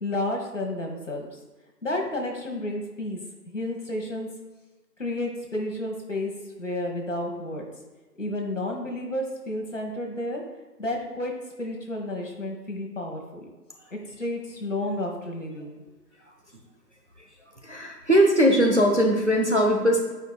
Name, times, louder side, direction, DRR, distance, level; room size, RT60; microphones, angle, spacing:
voice 1, 0.0-1.3 1.8-3.2 3.5-4.3 5.0-6.3 6.6-7.7 8.2-10.4 10.8-11.3 11.6-13.2 13.9-15.8, left 1 dB, 45° left, 1 dB, 1.2 m, -31 dB
voice 2, 17.6-20.0, equal, 45° right, 1 dB, 0.6 m, -20 dB
8.8 x 4.8 x 2.3 m, 1.2 s
figure-of-eight pair, 175°, 50 cm